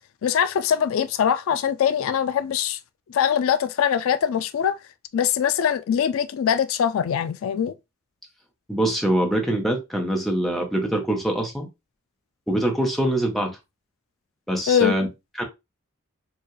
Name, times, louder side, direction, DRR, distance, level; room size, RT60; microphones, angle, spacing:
voice 1, 0.2-2.8 3.1-4.8 5.1-7.7 14.7-14.9, left 8 dB, 75° left, 0.3 m, -22 dB
voice 2, 8.7-11.7 12.5-13.6 14.5-15.1 15.3-15.4, right 1 dB, ahead, 0.8 m, -24 dB
4.6 x 2.3 x 3.1 m
head